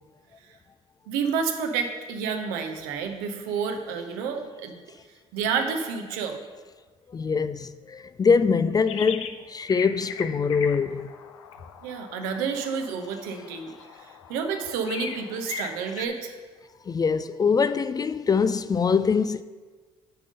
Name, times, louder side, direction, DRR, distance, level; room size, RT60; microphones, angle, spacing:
voice 1, 1.1-4.8 5.3-6.4 11.8-16.3, right 6 dB, 75° right, 0.9 m, -30 dB
voice 2, 7.1-11.1 16.9-19.4, left 5 dB, 25° left, 0.3 m, -23 dB
sound 1, 8.9-9.4 9.7-16.1, left 7 dB, 90° left, 0.4 m, -39 dB
8.8 x 3.7 x 6.4 m
hypercardioid pair, 55°, 15 cm